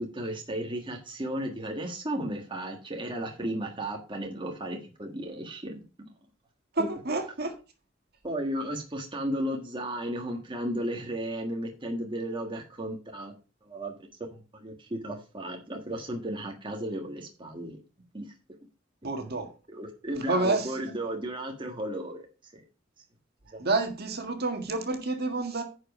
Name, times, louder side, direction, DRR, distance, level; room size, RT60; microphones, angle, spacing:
voice 1, 0.1-5.8 6.8-6.9 8.2-13.3 13.6-13.9 14.3-17.8 18.1-18.3 19.7-22.3 22.5-22.6 23.5-23.6, right 1 dB, 25° right, 2 dB, 1.6 m, -34 dB
voice 2, 6.7-7.5 19.0-19.5 20.2-20.8 23.6-25.6, right 3 dB, 55° right, 5 dB, 1.8 m, -29 dB
10.0 x 5.1 x 5.4 m, 0.33 s
head